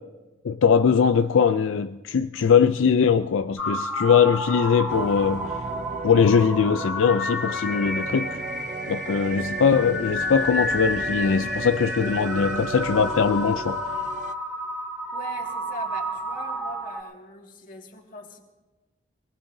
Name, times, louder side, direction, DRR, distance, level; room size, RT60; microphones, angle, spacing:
voice 1, 0.4-5.5 6.0-8.4 8.9-13.8, left 6 dB, 75° left, 0.4 m, -21 dB
sound 1, 3.6-17.0, left 1 dB, ahead, 2.2 m, -30 dB
sound 2, 4.9-14.3, right 5 dB, 35° right, 0.5 m, -36 dB
voice 2, 15.1-18.4, left 1 dB, 40° left, 2.1 m, -41 dB
24.0 x 19.0 x 2.7 m
head